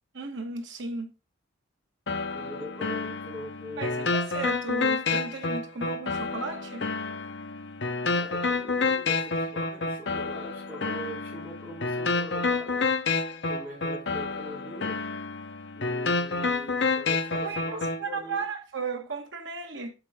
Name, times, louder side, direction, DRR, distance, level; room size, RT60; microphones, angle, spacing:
voice 1, 0.1-1.1 3.8-6.8 17.3-19.9, right 4 dB, 70° right, 1.4 m, -35 dB
sound 1, 2.1-18.0, left 3 dB, 60° left, 0.8 m, -29 dB
voice 2, 2.3-4.2 8.0-12.9 13.5-15.0 15.8-18.4, left 1 dB, 10° right, 3.3 m, -42 dB
7.9 x 5.3 x 3.5 m
head